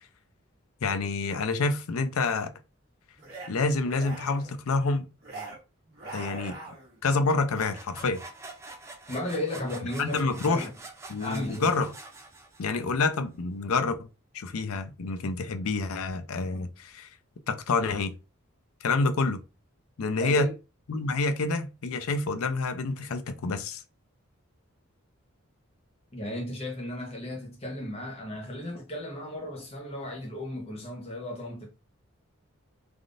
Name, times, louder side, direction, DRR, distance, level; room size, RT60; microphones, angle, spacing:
voice 1, 0.8-2.5 3.5-5.0 6.1-6.6 7.0-8.2 10.0-10.7 11.1-11.9 12.6-14.1 14.3-17.1 17.5-18.1 18.8-19.4 20.0-20.5 20.9-23.8, left 3 dB, 90° left, 0.5 m, -28 dB
sound 1, 3.2-3.5 3.8-4.6 5.2-5.6 5.9-7.0 7.5-7.8, right 3 dB, 45° right, 1.1 m, -42 dB
sound 2, 7.3-13.0, right 2 dB, 15° right, 0.4 m, -46 dB
voice 2, 9.1-10.7 11.2-11.7 20.2-20.5 26.1-31.7, equal, 30° left, 0.7 m, -34 dB
3.5 x 2.4 x 2.5 m
head